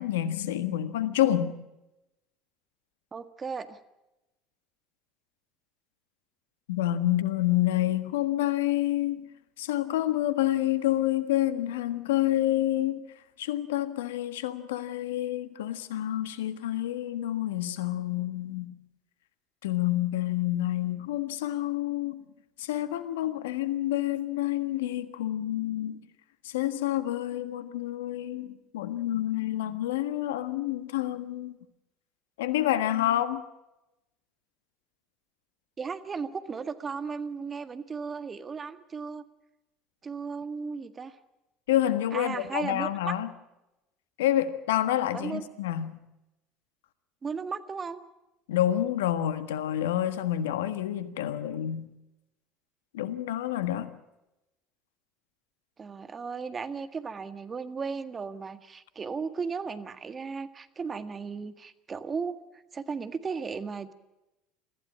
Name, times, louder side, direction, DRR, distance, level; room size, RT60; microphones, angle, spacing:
voice 1, 0.0-1.6 6.7-9.3 9.6-13.0 13.4-18.8 19.6-22.2 22.6-26.0 26.4-31.5 32.4-33.4 41.7-43.3 44.2-46.0 48.5-51.9 52.9-53.9, left 13 dB, 80° left, 1.5 m, -28 dB
voice 2, 3.1-3.8 35.8-39.2 40.0-41.2 42.1-43.1 45.1-45.4 47.2-48.0 55.8-62.4 62.7-63.9, right 5 dB, 30° right, 1.7 m, -35 dB
24.0 x 15.0 x 8.6 m
hypercardioid pair, 75°, 0 cm